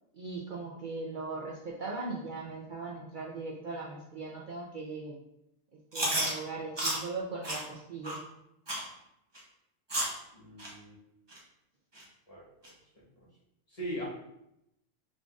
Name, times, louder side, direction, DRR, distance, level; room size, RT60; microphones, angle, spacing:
voice 1, 0.1-5.2 5.9-8.2, right 3 dB, 50° right, -3 dB, 0.6 m, -39 dB
Chewing mastication, 5.9-6.3 6.8-7.0 7.4-7.6 8.0-8.2 8.7-8.9 9.4-9.5 9.9-10.2 10.6-10.7 11.3-11.4 12.0-12.1 12.6-12.7, right 1 dB, 25° right, 0.9 m, -31 dB
voice 2, 10.3-11.0 12.3-12.7 13.7-14.0, equal, 30° left, -6 dB, 1.3 m, -40 dB
5.1 x 3.6 x 2.4 m, 0.83 s
omnidirectional pair, 1.3 m